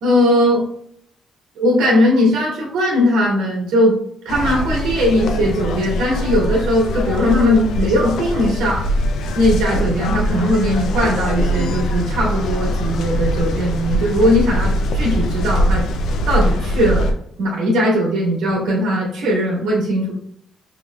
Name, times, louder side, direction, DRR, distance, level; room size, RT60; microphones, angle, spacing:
voice 1, 0.0-0.6 1.6-3.9 4.2-8.8 9.3-15.9 16.3-17.1 17.4-20.1, equal, 85° right, -5 dB, 1.4 m, -18 dB
sound 1, 4.3-17.1, left 1 dB, 80° left, 0.5 m, -21 dB
5.3 x 3.1 x 2.3 m, 0.69 s
cardioid pair, 90°, 0 cm